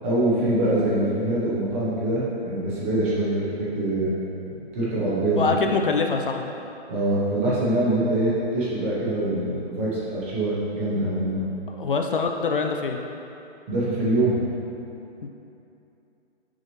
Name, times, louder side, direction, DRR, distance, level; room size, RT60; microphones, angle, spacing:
voice 1, 0.0-4.1 4.5-5.4 6.9-11.4 13.7-14.4, right 1 dB, 10° right, -8 dB, 0.8 m, -24 dB
voice 2, 5.4-6.5 11.7-13.0 15.2-15.3, left 4 dB, 55° left, 4 dB, 0.6 m, -24 dB
9.8 x 6.2 x 3.0 m, 2.8 s
hypercardioid pair, 170°, 33 cm